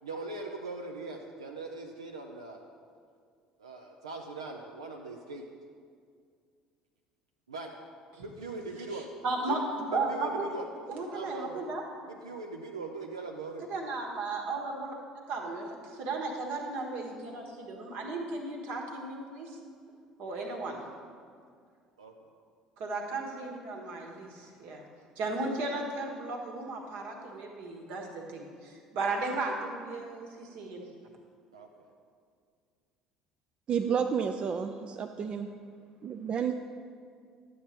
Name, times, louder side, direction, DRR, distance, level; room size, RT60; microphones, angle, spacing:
voice 1, 0.0-2.6 3.6-5.4 7.5-7.7 8.2-9.1 10.1-10.6 11.1-11.7 12.1-13.7 22.0-22.1 31.5-31.7, right 3 dB, 80° right, 1 dB, 0.6 m, -40 dB
voice 2, 8.9-10.3 10.9-11.8 13.7-15.0 15.3-19.6 20.2-20.8 22.8-24.8 25.2-30.9, right 3 dB, 55° right, 1 dB, 1.5 m, -35 dB
voice 3, 33.7-35.5 36.0-36.5, right 7 dB, 40° right, 6 dB, 0.5 m, -30 dB
11.5 x 7.8 x 4.4 m, 2.2 s
figure-of-eight pair, 60°, 3 cm